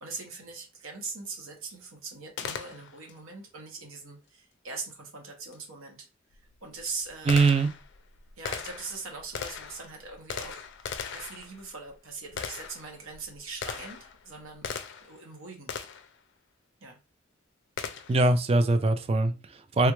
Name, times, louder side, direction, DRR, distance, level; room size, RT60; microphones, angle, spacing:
voice 1, 0.0-6.1 6.6-7.5 8.4-14.7 15.0-15.7 16.8-17.0, right 4 dB, 90° right, 1.1 m, -41 dB
Gunshot gunfire, 2.4-3.2 5.5-5.6 6.3-15.2 15.7-16.2 17.8-18.3, left 6 dB, 60° left, 0.4 m, -39 dB
voice 2, 7.3-7.7 18.1-19.9, right 3 dB, 30° right, 0.3 m, -22 dB
3.4 x 2.3 x 3.0 m
head